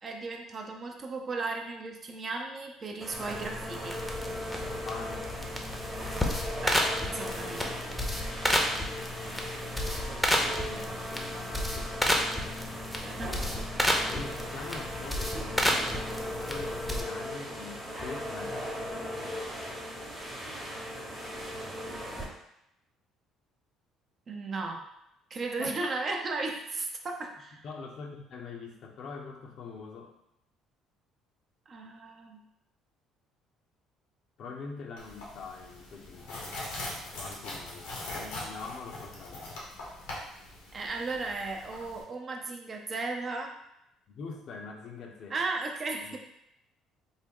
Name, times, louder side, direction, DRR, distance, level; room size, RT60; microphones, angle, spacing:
voice 1, 0.0-4.0 6.6-7.8 13.0-13.4 13.7-13.8 24.3-24.8 25.3-27.6 31.7-32.4 40.7-43.5 45.3-46.2, right 3 dB, 40° right, 2 dB, 0.6 m, -35 dB
sound 1, 3.0-22.2, equal, 20° right, 1.0 m, -38 dB
sound 2, 3.1-17.0, left 1 dB, 5° left, 0.7 m, -32 dB
voice 2, 4.7-5.6 8.7-9.8 10.4-12.4 14.1-18.8 25.6-26.0 27.6-30.1 34.4-36.6 37.1-39.7 44.1-45.4 46.0-46.2, left 4 dB, 60° left, 2 dB, 0.6 m, -44 dB
sound 3, 35.0-42.0, left 2 dB, 90° left, 1.0 m, -41 dB
3.5 x 2.1 x 3.6 m, 0.81 s
supercardioid pair, 75°, 0 cm